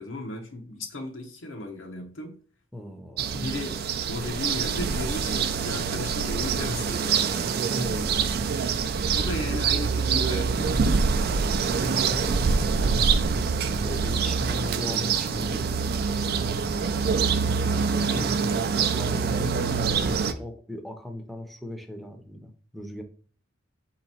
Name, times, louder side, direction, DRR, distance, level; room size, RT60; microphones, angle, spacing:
voice 1, 0.0-2.4 3.3-3.8 4.1-7.2 9.1-10.9 18.0-19.0 19.5-19.8, left 2 dB, 85° left, 0.8 m, -35 dB
voice 2, 2.7-3.3 7.7-8.6 11.6-17.0 17.9-18.3 18.9-23.0, left 1 dB, ahead, 0.6 m, -38 dB
sound 1, 3.2-20.3, right 5 dB, 55° right, 0.4 m, -25 dB
4.2 x 2.9 x 4.1 m
head